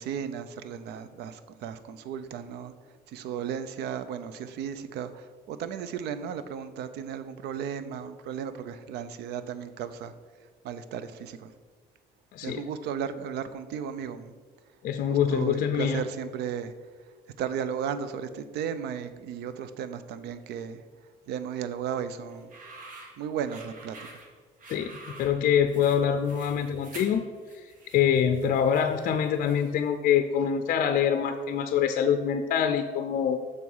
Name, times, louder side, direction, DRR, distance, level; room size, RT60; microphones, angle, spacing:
voice 1, 0.0-2.7 3.1-10.1 10.6-11.5 12.4-14.3 15.0-16.7 17.4-20.8 21.3-22.5 23.2-24.2, right 8 dB, 80° right, 12 dB, 0.5 m, -35 dB
voice 2, 14.8-16.0 24.7-27.2 27.5-27.7 27.9-33.4, left 8 dB, 55° left, 8 dB, 0.5 m, -25 dB
sound 1, 22.3-29.9, right 3 dB, 55° right, 1.5 m, -48 dB
6.7 x 4.7 x 5.4 m, 1.5 s
cardioid pair, 110°, 17 cm